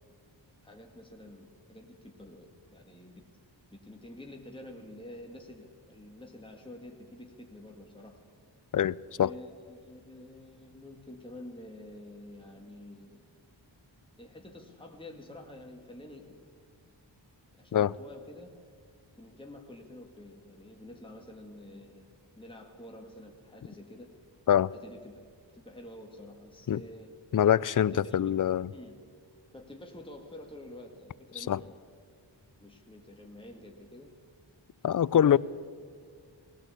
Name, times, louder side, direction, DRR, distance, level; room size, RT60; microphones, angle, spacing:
voice 1, 0.6-3.2 3.7-8.2 9.2-13.2 14.2-16.5 17.6-18.5 19.2-22.1 22.4-24.1 24.7-25.2 25.5-27.1 27.8-29.0 29.5-31.8 32.6-34.1 35.1-35.4, left 1 dB, 10° left, 1.9 m, -48 dB
voice 2, 8.7-9.3 17.7-17.9 24.5-24.7 26.7-26.8 27.3-28.7 31.4-31.6 34.8-35.4, left 10 dB, 45° left, 0.4 m, -24 dB
20.0 x 16.0 x 8.4 m
wide cardioid pair, 60°, 47 cm